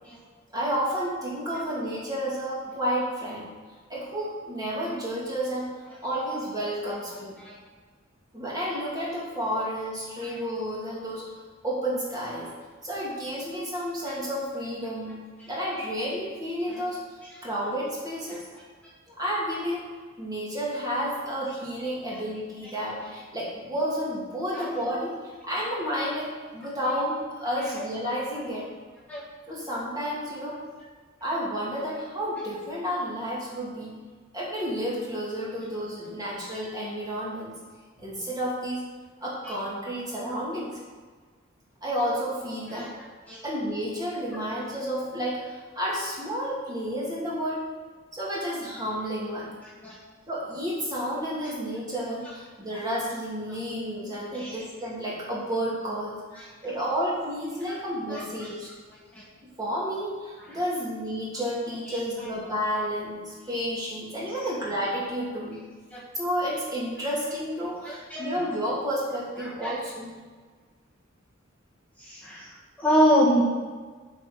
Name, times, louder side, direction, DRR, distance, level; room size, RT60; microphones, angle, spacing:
voice 1, 0.5-3.5 3.9-5.7 6.0-7.4 8.3-11.2 11.6-12.5 12.8-15.2 15.5-17.0 17.4-18.5 19.1-19.8 20.2-28.6 29.5-30.6 31.2-33.9 34.3-37.6 38.0-38.8 39.2-40.8 41.8-42.9 43.4-47.6 48.1-49.5 50.3-56.2 56.6-58.7 59.6-65.6 66.1-70.2, equal, 20° right, -6 dB, 2.7 m, -31 dB
voice 2, 54.3-54.7 56.3-56.5 57.7-57.8 58.1-58.2 59.1-59.2 61.8-62.3 64.3-64.5 65.9-66.0 67.8-68.5 69.4-69.7 72.0-73.4, equal, 5° left, -9 dB, 1.7 m, -27 dB
7.6 x 5.5 x 7.3 m, 1.5 s
head